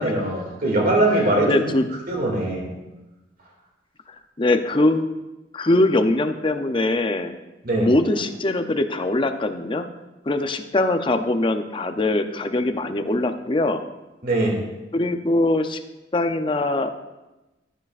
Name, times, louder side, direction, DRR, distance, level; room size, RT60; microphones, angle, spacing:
voice 1, 0.0-1.7 2.1-2.6 7.6-7.9 14.2-14.6, right 1 dB, 55° right, 0 dB, 2.3 m, -21 dB
voice 2, 1.1-1.9 4.4-5.1 5.5-7.4 7.8-9.9 10.3-13.8 14.9-15.8 16.1-16.9, left 2 dB, 30° left, 8 dB, 0.5 m, -22 dB
12.5 x 10.5 x 2.5 m, 1.0 s
head